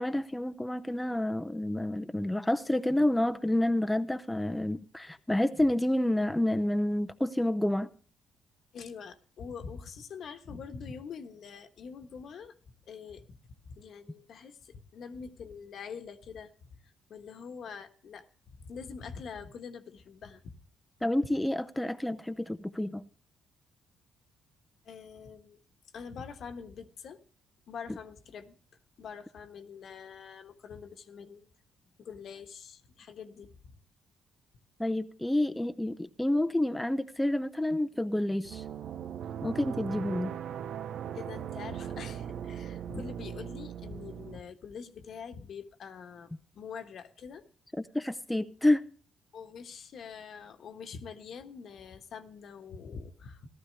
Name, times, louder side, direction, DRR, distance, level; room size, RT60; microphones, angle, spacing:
voice 1, 0.0-7.9 21.0-23.0 34.8-38.6 39.4-40.3 47.8-48.8, left 1 dB, 5° left, 0.7 m, -29 dB
voice 2, 8.7-12.5 12.9-13.4 13.7-16.5 16.8-20.6 24.8-25.6 25.9-27.2 27.7-28.6 29.0-31.5 32.0-33.8 41.1-47.4 48.4-48.5 49.3-53.5, left 6 dB, 65° left, 1.3 m, -45 dB
sound 1, 38.4-44.4, right 9 dB, 70° right, 0.7 m, -39 dB
15.0 x 13.0 x 3.3 m
cardioid pair, 90°, 0 cm